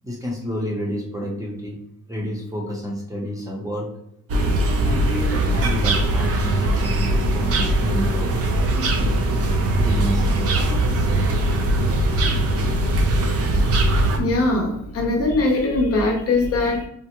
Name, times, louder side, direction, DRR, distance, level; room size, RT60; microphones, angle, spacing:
voice 1, 0.0-1.8 2.1-3.9 4.8-8.3 9.0-9.1 9.8-10.5, equal, 10° right, -3 dB, 0.6 m, -29 dB
sound 1, 4.3-14.2, right 1 dB, 50° right, 0.5 m, -20 dB
voice 2, 14.2-16.9, left 2 dB, 50° left, 1 dB, 0.6 m, -21 dB
3.4 x 2.0 x 2.9 m, 0.74 s
wide cardioid pair, 155°, 32 cm